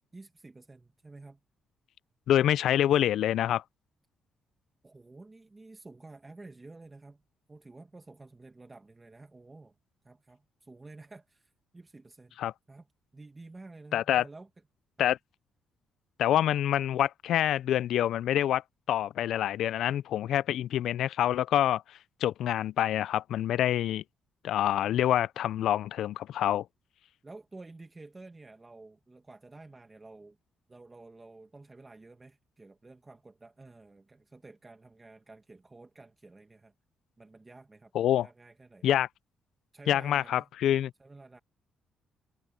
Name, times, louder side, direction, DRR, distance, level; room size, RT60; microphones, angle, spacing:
voice 1, 0.1-1.4 4.8-7.2 7.5-9.7 10.0-12.4 12.7-12.9 13.1-14.5 15.0-15.1 27.2-30.4 30.7-36.7 37.2-38.8 39.7-40.5 41.0-41.4, right 3 dB, 20° right, 1.7 m, -51 dB
voice 2, 2.3-3.6 12.4-12.5 13.9-14.2 15.0-15.2 16.2-18.6 18.9-21.8 22.2-24.0 24.4-26.6 37.9-38.3 38.8-39.1 39.9-40.9, left 11 dB, 75° left, 0.4 m, -26 dB
cardioid pair, 90°, 0 cm